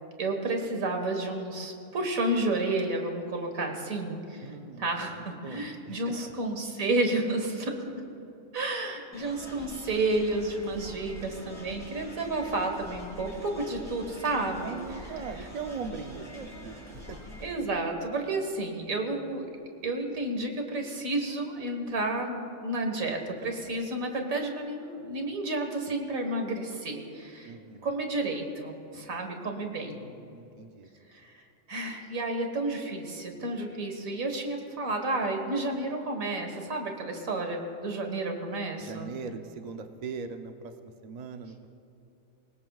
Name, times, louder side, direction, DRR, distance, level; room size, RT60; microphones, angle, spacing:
voice 1, 0.2-4.5 4.8-8.0 8.5-14.8 17.4-19.5 19.8-27.5 27.8-30.0 31.1-31.4 31.7-39.1, right 2 dB, 90° right, 3 dB, 2.0 m, -31 dB
voice 2, 4.4-6.1 14.6-17.2 27.4-27.9 29.8-30.9 38.8-41.7, right 5 dB, 40° right, 6 dB, 0.7 m, -40 dB
sound 1, 9.1-17.5, left 1 dB, 10° left, 3.8 m, -45 dB
24.0 x 19.5 x 2.4 m, 2.9 s
omnidirectional pair, 1.4 m